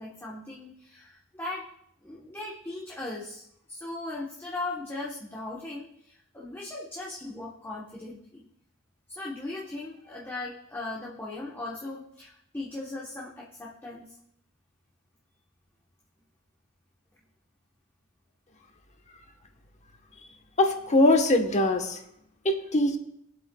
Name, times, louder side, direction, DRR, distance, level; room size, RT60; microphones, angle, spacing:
voice 1, 0.0-1.7 2.0-8.4 9.1-14.1, left 2 dB, 10° left, -4 dB, 1.1 m, -38 dB
voice 2, 20.6-22.0 22.4-23.0, left 1 dB, 35° left, 5 dB, 1.1 m, -22 dB
22.5 x 7.9 x 2.3 m, 0.76 s
head